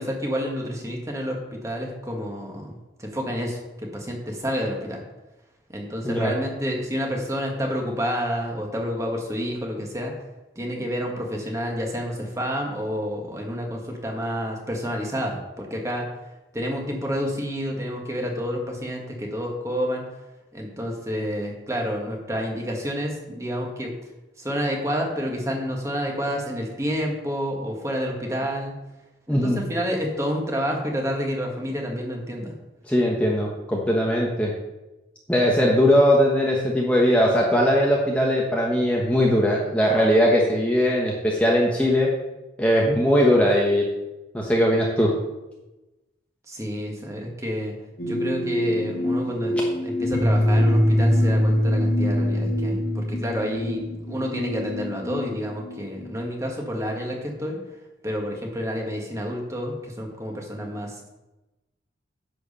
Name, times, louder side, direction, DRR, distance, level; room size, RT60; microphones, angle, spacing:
voice 1, 0.0-5.0 5.7-10.1 10.5-16.1 16.5-20.1 20.5-23.9 24.4-28.8 29.3-32.5 46.5-47.7 48.0-57.6 58.0-61.1, equal, 15° right, 0 dB, 1.6 m, -29 dB
voice 2, 29.3-29.6 32.9-34.5 35.3-42.1 42.6-43.9 44.3-45.1, equal, 5° left, -3 dB, 1.1 m, -20 dB
sound 1, 48.0-56.1, equal, 55° left, 1.8 m, -23 dB
10.5 x 4.7 x 6.7 m, 1.0 s
head